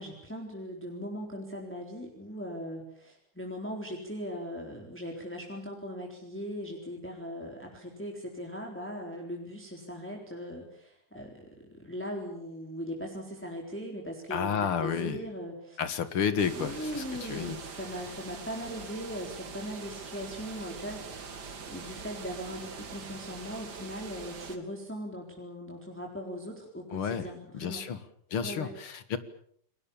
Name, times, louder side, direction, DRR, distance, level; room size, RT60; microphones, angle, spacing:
voice 1, 0.0-15.8 16.5-21.4 21.7-27.8 28.4-28.7, equal, 5° left, 0 dB, 4.0 m, -39 dB
voice 2, 14.3-15.2 15.8-17.6 26.9-27.3 27.5-28.0 28.3-29.2, left 7 dB, 75° left, 12 dB, 2.6 m, -31 dB
sound 1, 16.4-24.6, right 5 dB, 50° right, 2.5 m, -43 dB
29.5 x 22.0 x 7.1 m, 0.66 s
omnidirectional pair, 2.4 m